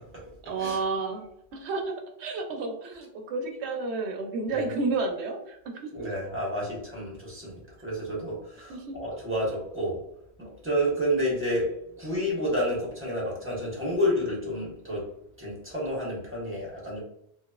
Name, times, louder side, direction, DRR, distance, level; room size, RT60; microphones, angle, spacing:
voice 1, 0.4-6.1 8.7-8.9, right 3 dB, 75° right, 3 dB, 0.9 m, -31 dB
voice 2, 5.9-10.0 10.4-15.1 15.4-17.0, equal, 10° right, -5 dB, 1.1 m, -30 dB
3.0 x 3.0 x 2.3 m, 0.72 s
omnidirectional pair, 1.1 m